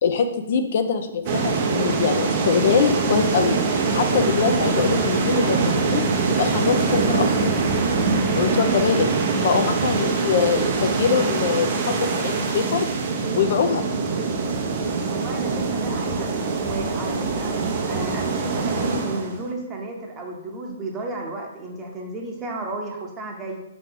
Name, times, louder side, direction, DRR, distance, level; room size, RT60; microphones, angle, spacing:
voice 1, 0.0-6.0 6.3-7.6 8.4-9.1 9.4-12.9 13.4-13.8, left 6 dB, 55° left, 7 dB, 0.4 m, -23 dB
sound 1, 1.3-19.5, right 4 dB, 45° right, 0.6 m, -23 dB
voice 2, 15.1-16.4 16.6-17.5 17.8-23.6, right 2 dB, 20° right, 0 dB, 0.8 m, -33 dB
4.7 x 3.0 x 3.7 m, 0.88 s
hypercardioid pair, 130°, 0 cm